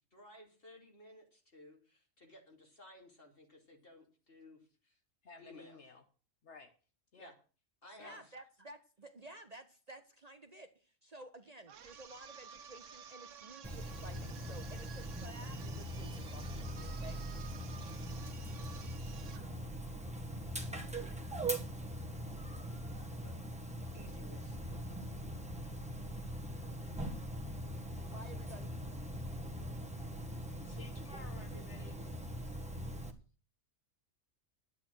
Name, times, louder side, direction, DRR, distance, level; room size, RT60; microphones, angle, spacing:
voice 1, 0.1-5.0 5.4-5.8 7.2-7.3 7.8-8.3 23.2-24.6, left 1 dB, 50° left, 1 dB, 3.5 m, -57 dB
voice 2, 5.2-6.0 6.4-6.7 7.1-7.3 7.9-8.2 30.7-32.0, left 3 dB, 65° left, 6 dB, 1.5 m, -54 dB
voice 3, 8.0-17.2 28.1-28.7, right 1 dB, 35° right, 8 dB, 1.0 m, -53 dB
sound 1, 11.7-19.5, right 7 dB, 80° right, 1.2 m, -53 dB
Dog, 13.6-33.1, right 1 dB, 5° right, 1.5 m, -42 dB
11.0 x 9.1 x 6.3 m, 0.37 s
omnidirectional pair, 1.3 m